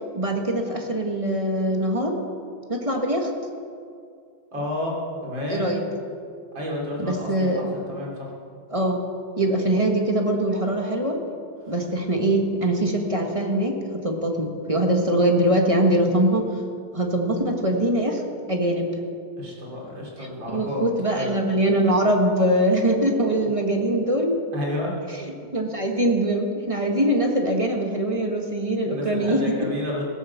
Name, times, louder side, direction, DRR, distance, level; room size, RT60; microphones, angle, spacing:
voice 1, 0.1-2.1 2.7-3.3 5.5-5.8 7.0-7.7 8.7-9.0 9.4-11.2 11.7-13.7 14.0-16.4 16.9-18.2 18.5-18.9 20.2-24.4 25.2-29.5, right 1 dB, 20° right, 2 dB, 1.4 m, -22 dB
voice 2, 4.5-5.0 5.2-5.6 6.5-8.3 11.7-11.8 19.4-20.8 21.2-21.3 24.5-25.0 28.8-30.0, left 1 dB, 65° right, -3 dB, 4.2 m, -31 dB
16.5 x 11.5 x 7.2 m, 2.4 s
omnidirectional pair, 2.2 m